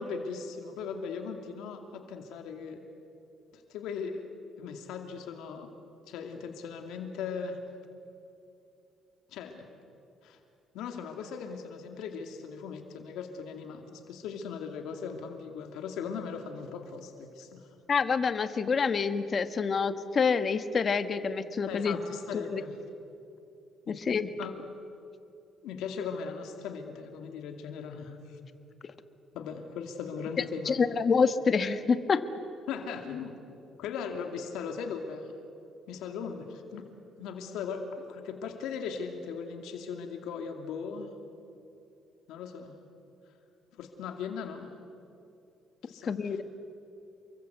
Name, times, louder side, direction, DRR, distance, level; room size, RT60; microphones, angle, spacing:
voice 1, 0.0-2.8 3.5-4.3 4.6-5.7 6.1-7.6 9.3-9.7 10.2-10.4 10.7-17.7 21.7-22.8 23.9-24.0 24.4-24.5 25.6-28.4 29.3-30.8 32.7-33.4 33.8-35.4 35.9-36.9 37.2-41.1 42.3-42.8 43.8-44.7 45.8-46.4, left 6 dB, 85° left, 5 dB, 2.5 m, -38 dB
voice 2, 17.9-22.0 22.3-22.6 24.1-24.3 30.7-32.2 46.1-46.4, left 5 dB, 40° left, 10 dB, 1.4 m, -27 dB
29.0 x 23.5 x 8.2 m, 2.7 s
cardioid pair, 105°, 0 cm